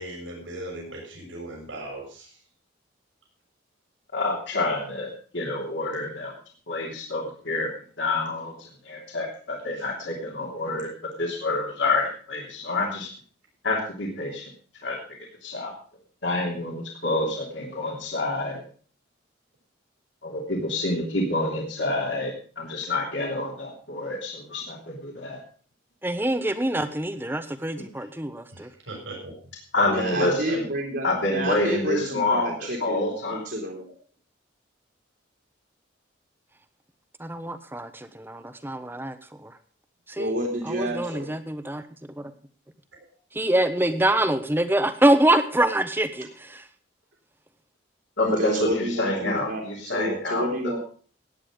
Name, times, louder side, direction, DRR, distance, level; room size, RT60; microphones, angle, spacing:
voice 1, 0.0-2.4 9.7-9.8 28.5-29.3, right 1 dB, 85° right, -1 dB, 6.9 m, -38 dB
voice 2, 4.1-6.3 6.7-7.7 8.0-10.9 11.2-13.1 13.6-14.5 14.8-15.0 15.4-15.7 16.2-18.6 20.2-25.4 29.7-30.6 31.0-32.5 32.8-33.4 48.2-48.6 49.0-50.5, left 2 dB, 70° left, -1 dB, 3.2 m, -27 dB
voice 3, 26.0-28.7 37.2-39.5 40.1-40.3 40.6-41.8 42.2-42.3 43.3-46.6, right 1 dB, 10° right, 11 dB, 1.0 m, -25 dB
voice 4, 29.9-33.9 40.2-41.3 48.2-50.8, right 1 dB, 60° right, -1 dB, 2.8 m, -30 dB
16.5 x 9.7 x 5.1 m, 0.43 s
head